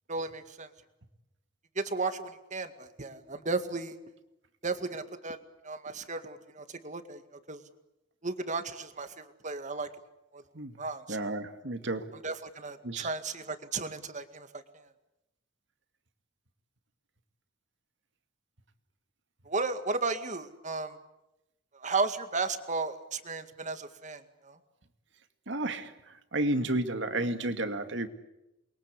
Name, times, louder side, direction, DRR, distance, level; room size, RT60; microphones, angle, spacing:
voice 1, 0.1-0.7 1.8-4.0 4.6-5.4 5.6-7.2 7.5-7.6 8.2-9.9 10.3-10.4 10.8-11.4 12.2-14.6 19.5-21.0 21.7-24.6, right 3 dB, 40° right, 9 dB, 2.1 m, -34 dB
voice 2, 11.1-12.2 12.8-13.1 25.5-28.1, right 2 dB, 65° right, 8 dB, 2.3 m, -32 dB
28.5 x 22.5 x 8.4 m, 0.93 s
head